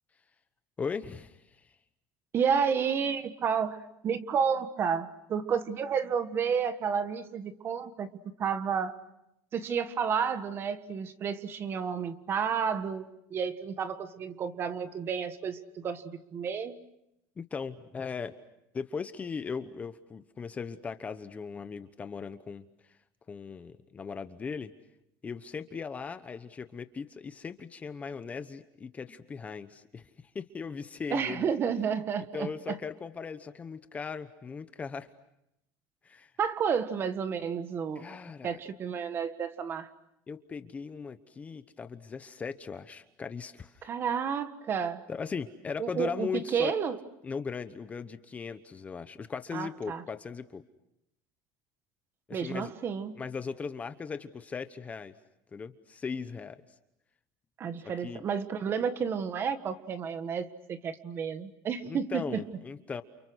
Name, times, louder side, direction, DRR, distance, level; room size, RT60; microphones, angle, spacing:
voice 1, 0.8-1.8 17.4-18.3 18.7-23.0 23.3-24.7 25.2-31.5 32.3-35.1 36.0-36.3 37.9-38.6 40.3-43.9 45.1-46.7 47.2-50.6 52.3-52.7 53.2-55.1 55.5-56.6 57.8-58.2 61.8-63.0, left 5 dB, 20° left, 11 dB, 1.0 m, -38 dB
voice 2, 2.3-8.1 8.4-8.9 9.5-16.7 31.1-32.7 36.4-38.2 38.4-39.9 43.8-45.0 45.8-47.0 49.5-50.0 52.3-53.1 57.6-62.4, right 7 dB, 30° right, 11 dB, 1.5 m, -31 dB
29.5 x 29.0 x 6.3 m, 0.83 s
cardioid pair, 160°, 8 cm